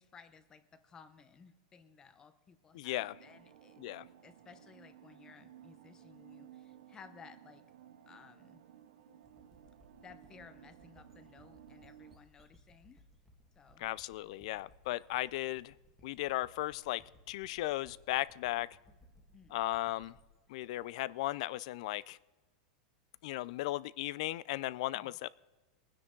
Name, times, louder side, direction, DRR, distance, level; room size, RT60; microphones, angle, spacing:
voice 1, 0.0-3.8 4.2-7.6 8.1-8.6 10.0-13.0 13.6-13.8 19.3-19.6 24.9-25.2, left 6 dB, 15° left, 12 dB, 0.8 m, -57 dB
voice 2, 2.7-3.2 3.8-4.1 13.8-15.7 16.0-17.0 17.3-18.7 19.5-20.1 20.5-22.2 23.2-25.3, left 17 dB, 55° left, 21 dB, 0.4 m, -36 dB
sound 1, 3.0-12.2, right 10 dB, 75° right, 0.9 m, -57 dB
sound 2, 9.2-21.8, equal, ahead, 1.7 m, -64 dB
22.5 x 9.8 x 3.8 m, 1.2 s
supercardioid pair, 160°, 4 cm